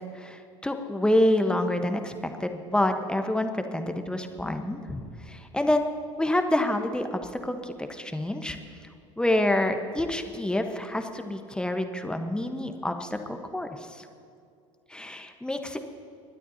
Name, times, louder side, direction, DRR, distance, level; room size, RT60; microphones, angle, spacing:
voice 1, 0.1-5.8 6.2-8.6 9.2-14.1 14.9-15.8, left 1 dB, 5° left, 6 dB, 1.2 m, -27 dB
29.5 x 12.0 x 2.9 m, 2.5 s
figure-of-eight pair, 75°, 17 cm